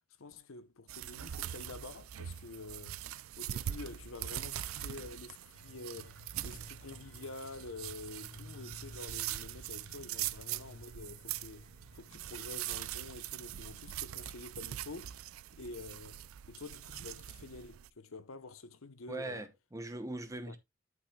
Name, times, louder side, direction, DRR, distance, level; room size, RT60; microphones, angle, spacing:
voice 1, 0.2-3.0 3.4-6.2 6.4-15.2 15.6-16.2 16.5-19.4 20.3-20.6, left 3 dB, 80° left, 0.9 m, -48 dB
sound 1, 0.9-17.9, right 12 dB, 90° right, 0.4 m, -42 dB
sound 2, 5.5-12.8, left 1 dB, 65° left, 1.6 m, -55 dB
voice 2, 19.1-20.6, right 2 dB, 15° right, 0.8 m, -40 dB
12.0 x 5.5 x 2.2 m
head